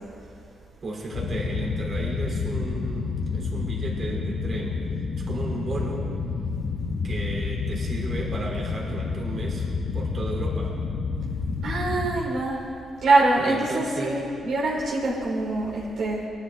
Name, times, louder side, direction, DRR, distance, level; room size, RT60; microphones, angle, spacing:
voice 1, 0.8-4.8 5.2-6.1 7.0-9.7 9.9-10.8 13.4-14.3, right 2 dB, 45° right, -3 dB, 3.4 m, -34 dB
sound 1, 1.1-12.2, left 4 dB, 70° left, 1.0 m, -29 dB
voice 2, 11.6-12.6 13.0-16.3, right 2 dB, 75° right, -4 dB, 2.7 m, -24 dB
20.0 x 11.5 x 3.7 m, 2.5 s
cardioid pair, 90°, 0 cm